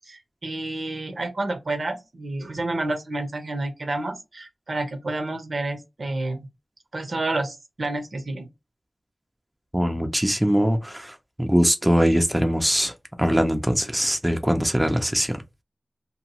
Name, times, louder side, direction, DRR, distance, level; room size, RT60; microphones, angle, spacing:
voice 1, 0.1-6.5 6.9-8.5, right 2 dB, 65° right, 0.7 m, -29 dB
voice 2, 9.7-12.9 13.2-15.4, equal, 10° right, 0.4 m, -22 dB
2.8 x 2.2 x 2.8 m
wide cardioid pair, 75°, 0 cm